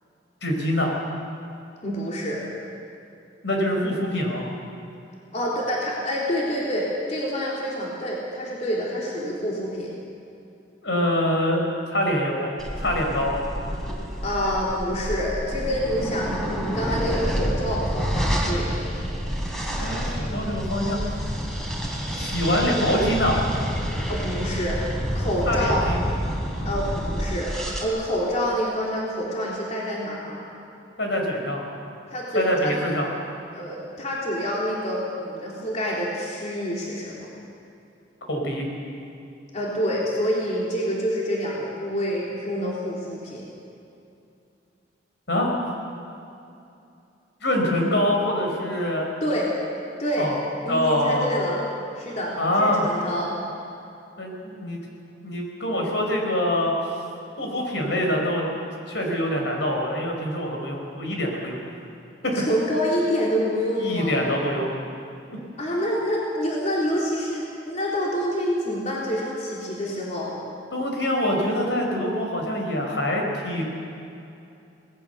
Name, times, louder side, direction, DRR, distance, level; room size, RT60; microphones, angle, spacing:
voice 1, 0.4-1.0 3.4-4.5 10.8-11.6 11.9-12.5 12.8-13.3 19.8-21.0 22.2-23.4 25.5-26.0 31.0-31.6 32.3-33.1 38.3-38.7 45.3-45.5 47.4-49.1 50.2-50.3 50.7-51.3 52.4-52.9 54.2-54.8 55.2-56.7 57.4-58.4 58.9-61.6 62.2-62.4 63.8-64.7 70.7-73.6, left 1 dB, 70° left, 1 dB, 5.0 m, -24 dB
voice 2, 1.8-2.4 5.3-9.9 14.2-18.8 24.1-26.2 26.6-27.5 27.8-30.4 32.1-32.7 33.5-37.3 39.5-43.5 49.2-49.5 50.0-50.3 50.6-51.6 52.0-53.4 62.2-64.2 65.6-70.3, equal, 40° left, -4 dB, 3.6 m, -27 dB
sound 1, 12.6-27.8, equal, 5° left, 3.6 m, -28 dB
26.5 x 19.5 x 6.9 m, 2.7 s
head